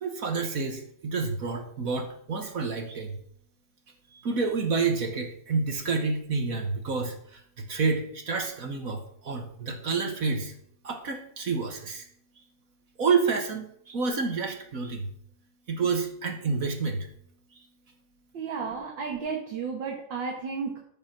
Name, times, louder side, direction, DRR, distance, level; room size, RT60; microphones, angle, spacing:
voice 1, 0.0-3.2 4.2-10.5 10.8-12.0 13.0-15.1 15.7-17.1, right 4 dB, 50° right, 5 dB, 1.6 m, -29 dB
voice 2, 18.3-20.8, right 5 dB, 70° right, 0 dB, 2.3 m, -33 dB
13.0 x 5.7 x 6.0 m, 0.65 s
omnidirectional pair, 2.1 m